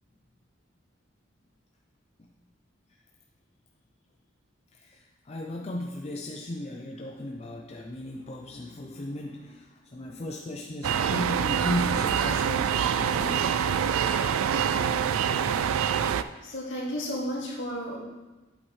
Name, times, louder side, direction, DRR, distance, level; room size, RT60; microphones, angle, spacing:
voice 1, 4.7-13.6, left 1 dB, 30° left, 1 dB, 0.4 m, -36 dB
sound 1, 10.8-16.2, right 8 dB, 85° right, 0.3 m, -25 dB
voice 2, 16.1-18.0, equal, 65° left, -4 dB, 2.3 m, -33 dB
8.6 x 8.2 x 3.2 m, 1.1 s
head